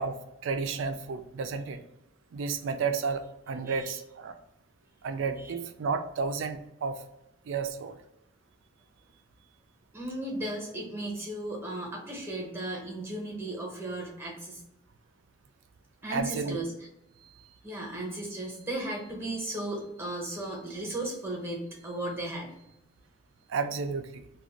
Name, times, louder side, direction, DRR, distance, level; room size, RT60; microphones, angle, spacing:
voice 1, 0.0-1.8 2.3-4.4 5.0-7.0 7.5-8.0 16.1-16.6 23.5-24.3, right 5 dB, 70° right, 9 dB, 0.3 m, -32 dB
voice 2, 3.6-3.9 5.4-5.5 9.9-14.6 16.0-16.7 17.2-22.5, right 1 dB, 10° right, -1 dB, 0.8 m, -36 dB
2.5 x 2.2 x 3.5 m, 0.85 s
head